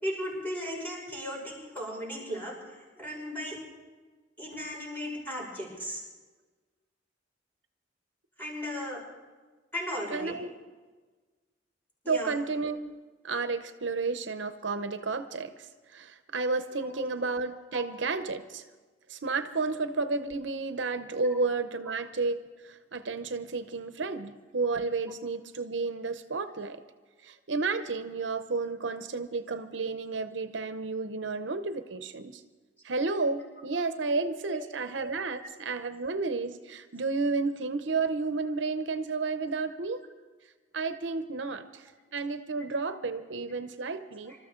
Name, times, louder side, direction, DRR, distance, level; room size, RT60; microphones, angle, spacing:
voice 1, 0.0-3.6 4.4-6.0 8.4-9.0 9.7-10.3 12.0-12.4 16.8-17.1 17.7-17.8 34.5-34.6 44.2-44.3, equal, 10° left, -4 dB, 5.8 m, -36 dB
voice 2, 10.1-10.5 12.1-12.9 13.2-18.6 19.1-26.8 27.2-32.4 32.8-40.0 40.7-44.3, right 3 dB, 70° right, 10 dB, 0.8 m, -32 dB
26.0 x 13.5 x 3.8 m, 1.3 s
head